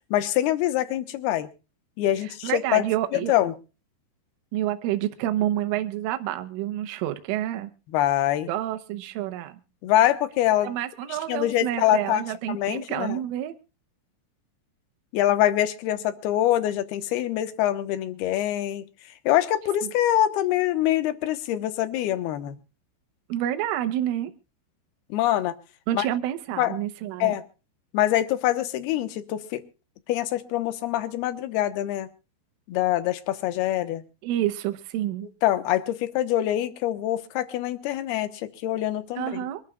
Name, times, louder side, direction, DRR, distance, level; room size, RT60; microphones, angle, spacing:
voice 1, 0.1-1.5 2.0-2.8 3.1-3.5 7.9-8.5 9.8-10.7 11.3-12.2 12.5-13.2 15.1-18.8 19.3-22.6 25.1-25.5 25.9-26.1 26.6-26.8 27.2-27.4 27.9-29.6 30.1-32.1 32.7-34.0 35.4-39.4, left 13 dB, 70° left, 11 dB, 2.7 m, -24 dB
voice 2, 2.2-3.3 4.5-7.7 8.5-9.6 10.6-13.5 19.8-19.9 23.3-24.3 25.9-27.4 34.2-35.3 39.2-39.6, right 13 dB, 85° right, 7 dB, 3.5 m, -28 dB
26.0 x 12.0 x 2.4 m, 0.33 s
omnidirectional pair, 5.6 m